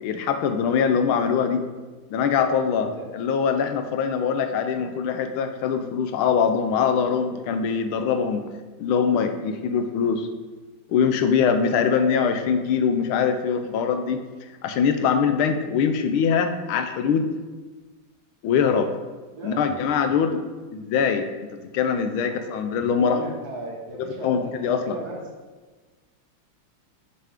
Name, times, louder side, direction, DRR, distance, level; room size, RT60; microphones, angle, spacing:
voice 1, 0.0-1.6 2.1-8.4 8.8-10.3 10.9-14.2 14.6-17.3 18.4-18.9 19.4-20.4 20.7-23.2 24.0-25.0, left 6 dB, 90° left, 7 dB, 1.5 m, -23 dB
voice 2, 19.3-20.3 22.2-22.4 22.9-25.2, right 2 dB, 55° right, -1 dB, 1.6 m, -37 dB
6.5 x 6.4 x 3.6 m, 1.3 s
omnidirectional pair, 2.2 m